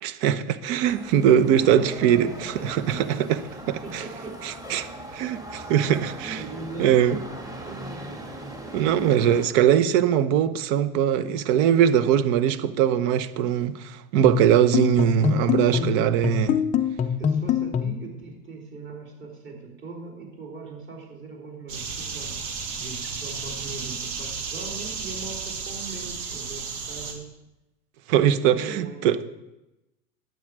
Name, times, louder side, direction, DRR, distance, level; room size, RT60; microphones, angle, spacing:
voice 1, 0.0-3.4 3.7-4.0 4.4-4.9 5.1-6.4 6.8-7.2 8.7-16.6 28.1-29.3, right 9 dB, 50° right, 1.0 m, -21 dB
sound 1, 0.9-9.5, right 1 dB, 10° right, 1.6 m, -39 dB
voice 2, 1.6-4.4 6.2-6.9 7.4-8.1 15.6-16.1 17.2-22.4 22.8-27.3 28.3-29.0, right 3 dB, 25° right, 3.4 m, -40 dB
sound 2, 14.2-18.1, left 8 dB, 15° left, 0.4 m, -25 dB
sound 3, 21.7-27.1, right 5 dB, 70° right, 2.5 m, -33 dB
11.5 x 8.2 x 4.7 m
hypercardioid pair, 115°, 45 cm